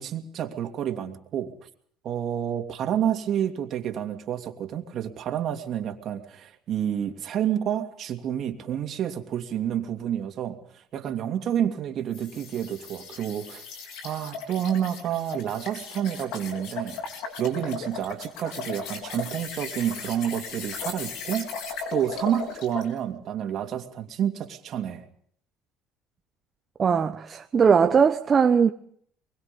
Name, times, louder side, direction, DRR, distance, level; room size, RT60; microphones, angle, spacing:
voice 1, 0.0-1.7 2.0-13.6 14.0-17.0 17.4-21.5 21.9-25.0, right 10 dB, 55° right, 2.7 m, -29 dB
sound 1, 12.1-22.9, left 5 dB, 75° left, 4.0 m, -37 dB
voice 2, 26.8-28.7, right 6 dB, 35° right, 1.0 m, -20 dB
23.5 x 22.0 x 5.4 m
supercardioid pair, 75°, 0 cm